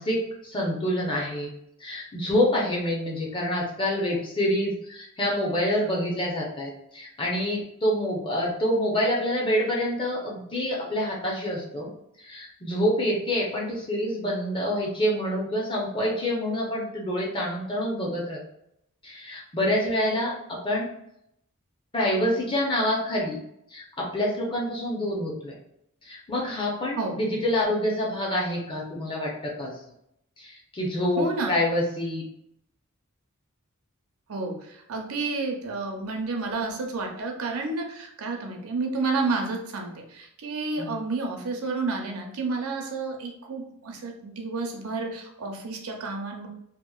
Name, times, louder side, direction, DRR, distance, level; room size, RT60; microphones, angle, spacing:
voice 1, 0.0-1.5 1.8-11.9 12.2-18.4 19.0-20.9 21.9-23.4 23.7-25.5 26.0-29.7 30.4-32.2 40.8-41.0, left 1 dB, 25° left, -2 dB, 0.6 m, -27 dB
voice 2, 31.2-31.6 34.3-46.5, right 3 dB, 75° right, 2 dB, 0.5 m, -30 dB
2.8 x 2.1 x 2.3 m, 0.77 s
head